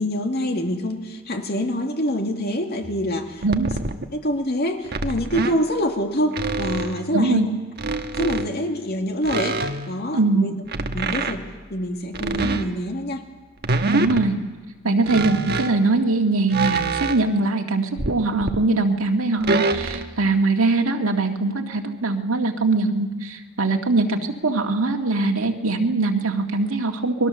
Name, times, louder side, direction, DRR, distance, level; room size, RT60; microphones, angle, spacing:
voice 1, 0.0-3.5 3.8-7.5 8.2-10.6 10.9-13.2 14.8-15.0, equal, 50° left, 4 dB, 2.3 m, -26 dB
sound 1, 2.8-4.1 4.9-5.6 6.3-7.2 7.8-8.8 9.2-11.5 12.1-13.1 13.6-14.4 15.1-15.9 16.5-17.5 18.0-18.7 19.4-20.4, right 3 dB, 50° right, 1.3 m, -26 dB
voice 2, 7.1-7.5 10.1-10.5 13.9-14.4 14.8-27.3, right 3 dB, 80° right, 2 dB, 2.0 m, -22 dB
29.0 x 21.5 x 7.0 m, 1.3 s
head